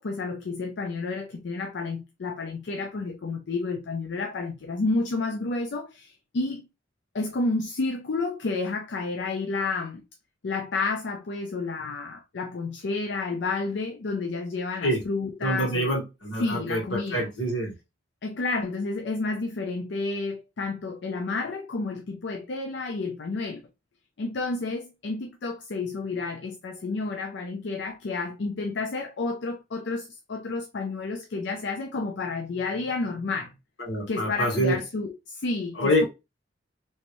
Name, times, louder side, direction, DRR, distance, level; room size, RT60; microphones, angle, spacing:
voice 1, 0.0-6.7 7.1-10.0 10.4-16.0 16.4-17.3 18.2-23.6 24.2-33.5 34.1-36.1, left 3 dB, 65° left, 0.5 m, -30 dB
voice 2, 15.4-17.7 33.8-34.7 35.8-36.1, equal, 85° left, 1.8 m, -26 dB
3.2 x 3.0 x 2.5 m
head